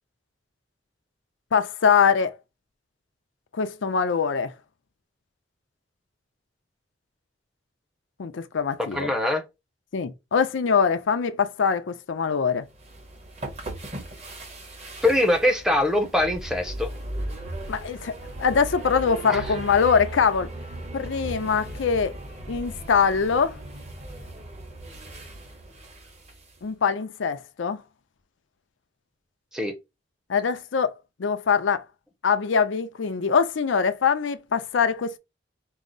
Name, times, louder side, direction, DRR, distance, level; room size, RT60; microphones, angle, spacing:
voice 1, 1.5-2.3 3.5-4.5 8.2-9.1 9.9-12.7 17.7-18.1 18.4-20.5 20.9-22.1 22.5-23.6 26.6-27.8 30.3-30.9 31.2-31.8 32.2-35.2, left 6 dB, 85° left, 0.5 m, -23 dB
voice 2, 8.9-9.4 15.0-16.9 19.3-19.4 29.5-29.7, left 1 dB, 5° right, 0.6 m, -23 dB
sound 1, 12.7-26.6, right 1 dB, 35° right, 1.1 m, -37 dB
4.6 x 2.0 x 3.9 m
head